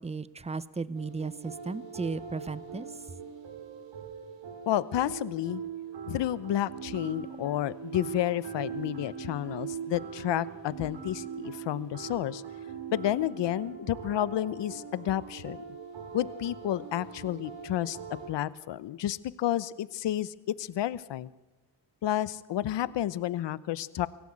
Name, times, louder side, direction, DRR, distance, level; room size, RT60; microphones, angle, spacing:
voice 1, 0.0-2.9, right 4 dB, 15° right, 17 dB, 0.9 m, -35 dB
sound 1, 0.9-18.3, right 7 dB, 75° right, 4.9 m, -41 dB
voice 2, 4.7-5.6 6.1-12.4 12.9-15.6 16.1-18.0 18.3-21.3 22.0-24.1, left 12 dB, 70° left, 17 dB, 1.0 m, -31 dB
24.0 x 16.0 x 8.8 m, 1.1 s
cardioid pair, 100°, 44 cm